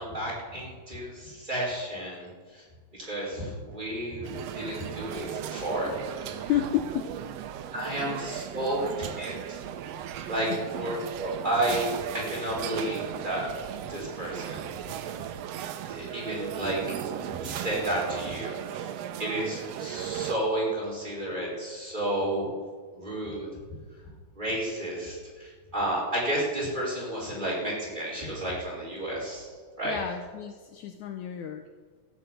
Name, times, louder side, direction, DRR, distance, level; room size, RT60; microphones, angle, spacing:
voice 1, 0.0-2.6 2.9-4.3 4.5-6.5 7.7-8.8 9.2-9.6 10.3-10.5 10.8-13.5 13.9-14.7 15.6-16.8 17.4-18.9 19.2-22.5 22.9-23.5 24.4-29.5 29.8-30.0, right 1 dB, 15° right, -4 dB, 4.5 m, -32 dB
sound 1, 4.2-20.4, right 10 dB, 80° right, 1.4 m, -36 dB
voice 2, 6.5-7.1 10.5-10.6 29.8-31.7, left 11 dB, 75° left, 6 dB, 1.9 m, -31 dB
14.5 x 8.5 x 8.1 m, 1.6 s
omnidirectional pair, 3.8 m